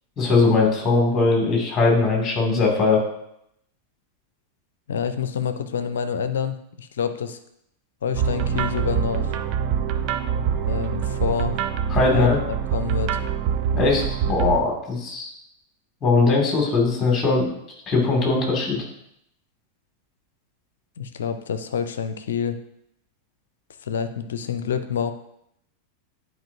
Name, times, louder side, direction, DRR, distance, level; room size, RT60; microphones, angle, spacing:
voice 1, 0.2-3.0 11.9-12.4 13.7-15.3 16.0-17.5 17.9-18.8, left 3 dB, 20° left, -1 dB, 2.4 m, -20 dB
voice 2, 4.9-7.4 8.0-9.4 10.5-11.6 12.1-13.2 21.0-22.6 23.8-25.1, left 7 dB, 65° left, 10 dB, 0.6 m, -27 dB
sound 1, 8.1-14.6, right 7 dB, 40° right, 0.5 m, -24 dB
10.5 x 4.7 x 2.7 m, 0.76 s
figure-of-eight pair, 90°, 0 cm